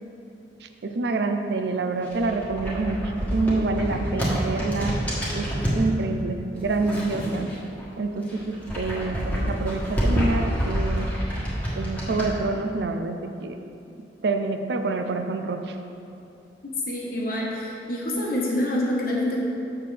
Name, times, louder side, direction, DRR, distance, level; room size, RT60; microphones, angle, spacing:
voice 1, 0.6-5.0 5.3-7.5 8.0-11.1 11.8-13.6 14.2-15.8, right 3 dB, 65° right, 6 dB, 0.4 m, -27 dB
sound 1, 2.0-5.8 6.5-7.8 8.2-12.3, equal, 10° left, 1.4 m, -27 dB
voice 2, 16.6-19.4, left 1 dB, 55° left, -3 dB, 1.2 m, -27 dB
7.1 x 6.6 x 3.3 m, 2.7 s
head